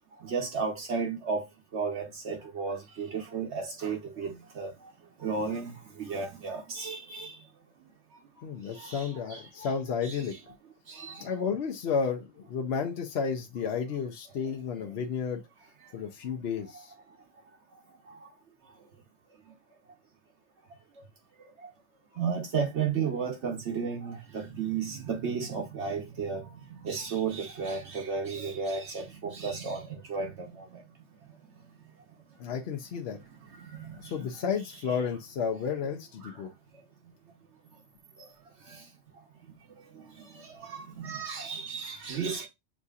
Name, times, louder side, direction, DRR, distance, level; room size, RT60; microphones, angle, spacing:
voice 1, 0.2-1.4 1.7-4.7 5.2-5.7 6.0-7.3 8.8-9.7 10.0-10.2 10.9-11.2 22.2-26.4 26.8-30.3 40.7-42.5, right 5 dB, 65° right, 1.1 m, -33 dB
voice 2, 8.4-10.3 11.2-15.4 15.9-16.9 32.4-33.2 34.0-36.5, left 6 dB, 60° left, 0.8 m, -32 dB
7.3 x 2.7 x 2.4 m
omnidirectional pair, 1.3 m